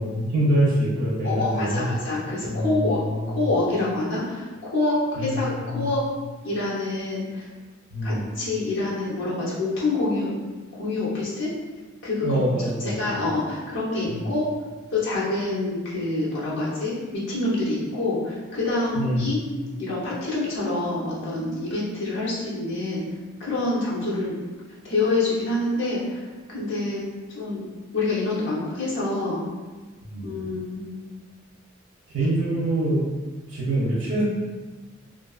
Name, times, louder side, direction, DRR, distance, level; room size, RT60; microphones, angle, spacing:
voice 1, 0.0-2.0 2.5-3.3 5.2-5.3 5.6-5.9 7.9-8.2 12.2-13.0 14.1-14.3 19.0-19.3 30.1-30.3 32.1-33.1 33.5-34.2, right 1 dB, 80° right, -5 dB, 0.5 m, -25 dB
voice 2, 1.2-3.0 3.3-6.0 6.4-7.5 8.0-10.4 10.8-11.5 12.0-12.4 12.8-14.4 14.9-19.4 19.8-23.0 23.4-24.4 24.8-27.0 27.3-27.7 27.9-29.4 30.2-31.0, left 2 dB, 65° left, -7 dB, 0.8 m, -26 dB
2.4 x 2.3 x 2.3 m, 1.3 s
head